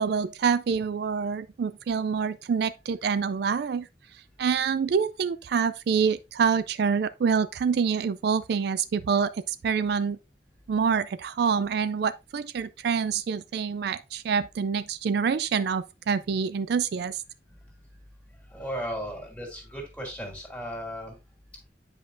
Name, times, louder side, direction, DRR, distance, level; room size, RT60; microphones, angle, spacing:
voice 1, 0.0-3.9 4.4-10.2 10.7-17.2, right 6 dB, 60° right, 0.3 m, -26 dB
voice 2, 18.5-21.2, equal, 10° left, 2.5 m, -35 dB
9.1 x 5.2 x 2.6 m
head